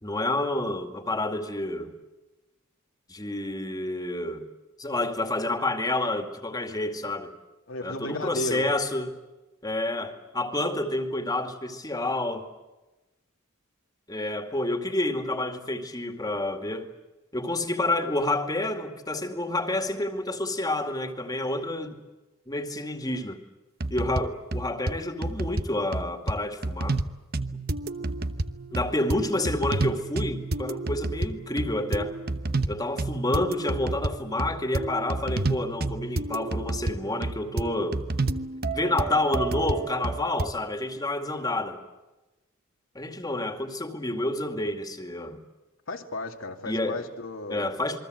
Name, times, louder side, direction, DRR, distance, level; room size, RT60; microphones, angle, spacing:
voice 1, 0.0-1.9 3.1-4.5 4.8-7.3 7.8-9.2 9.6-12.5 14.1-16.9 17.3-22.0 22.5-23.4 23.9-27.0 28.7-32.1 32.7-38.0 38.7-41.8 42.9-45.4 46.7-47.0 47.5-48.0, left 2 dB, 20° left, 6 dB, 2.3 m, -29 dB
voice 2, 7.7-8.7 45.9-47.8, left 1 dB, 75° left, 3 dB, 2.5 m, -34 dB
sound 1, 23.8-24.2 24.5-24.9 25.2-25.6 25.9-26.4 26.6-27.1 27.3-40.5, right 2 dB, 50° right, 1.0 m, -30 dB
28.0 x 22.5 x 7.9 m, 1.1 s
head